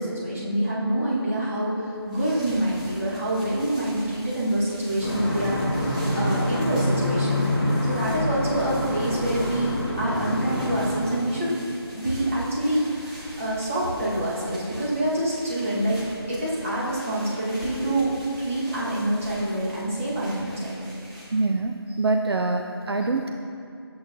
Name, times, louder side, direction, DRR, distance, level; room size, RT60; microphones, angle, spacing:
voice 1, 0.0-7.4 7.8-11.5 11.9-16.0 16.3-18.1 18.4-20.8, right 1 dB, 30° right, -6 dB, 1.7 m, -26 dB
sound 1, 1.9-21.5, equal, 15° right, 1.0 m, -43 dB
sound 2, 5.0-11.3, left 1 dB, 10° left, 1.0 m, -26 dB
voice 2, 21.3-23.3, right 3 dB, 65° right, 4 dB, 0.5 m, -25 dB
10.5 x 7.7 x 2.8 m, 2.5 s
figure-of-eight pair, 170°, 14 cm